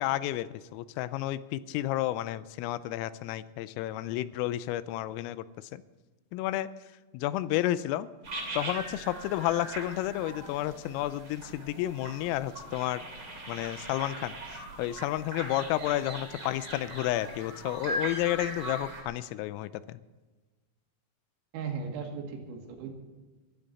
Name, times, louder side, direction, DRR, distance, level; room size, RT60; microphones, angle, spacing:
voice 1, 0.0-5.8 6.3-6.7 7.1-8.1 8.5-13.0 13.5-20.0, left 14 dB, 85° left, 15 dB, 3.3 m, -31 dB
sound 1, 8.2-19.0, right 1 dB, 30° right, 2.4 m, -40 dB
voice 2, 21.5-22.9, right 5 dB, 85° right, 2 dB, 4.7 m, -37 dB
23.0 x 12.0 x 4.1 m, 1.3 s
omnidirectional pair, 5.9 m